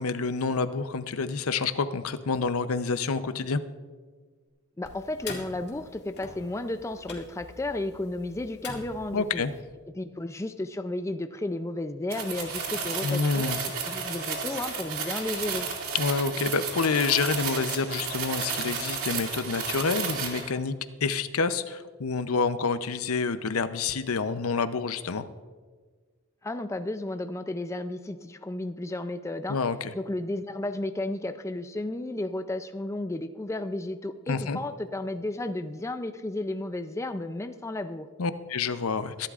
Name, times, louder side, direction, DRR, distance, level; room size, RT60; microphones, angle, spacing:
voice 1, 0.0-3.6 9.1-9.5 13.0-13.6 15.9-20.7 21.0-25.3 29.5-29.9 34.3-34.6 38.2-39.3, left 4 dB, 75° left, 12 dB, 0.7 m, -28 dB
sound 1, 4.8-9.6, left 3 dB, 50° left, 2.0 m, -44 dB
voice 2, 4.8-9.4 9.9-13.5 13.8-15.7 26.4-29.6 29.9-38.1, left 2 dB, 15° left, 9 dB, 0.4 m, -33 dB
sound 2, 12.1-20.5, right 5 dB, 75° right, 2.3 m, -32 dB
22.5 x 11.5 x 2.5 m, 1.5 s
head